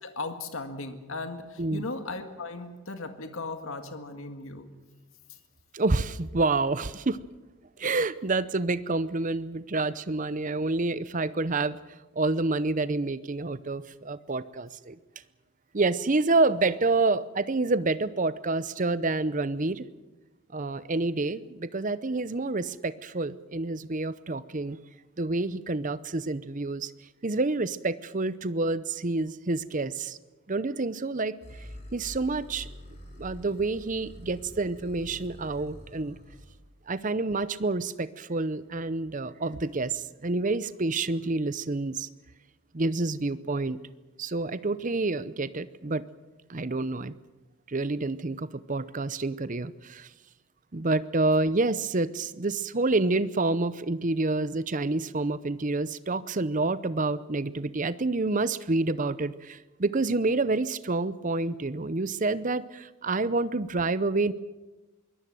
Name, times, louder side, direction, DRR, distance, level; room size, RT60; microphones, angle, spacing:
voice 1, 0.0-4.7, left 3 dB, 65° left, 7 dB, 1.9 m, -37 dB
voice 2, 5.7-7.2 7.8-11.8 12.2-15.0 15.7-19.9 20.5-24.8 25.2-26.9 27.2-30.2 30.5-31.4 31.9-32.7 33.2-36.2 36.9-42.1 42.7-43.8 44.2-46.0 46.5-47.1 47.7-50.1 50.7-64.3, right 3 dB, 35° right, 16 dB, 0.7 m, -28 dB
sound 1, 31.4-36.6, equal, 30° left, 5.1 m, -46 dB
23.0 x 18.0 x 7.7 m, 1.1 s
head